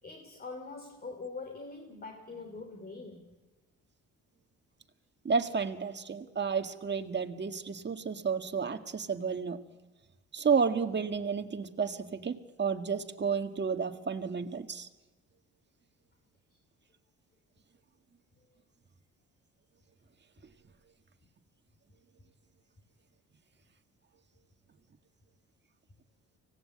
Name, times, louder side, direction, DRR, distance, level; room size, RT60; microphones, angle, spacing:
voice 1, 0.0-3.4 16.5-16.6 21.2-21.3, left 3 dB, 30° left, 3.2 m, -44 dB
voice 2, 5.3-9.6 10.3-14.9, right 5 dB, 35° right, 1.9 m, -31 dB
25.0 x 18.0 x 8.7 m
cardioid pair, 90°, 30 cm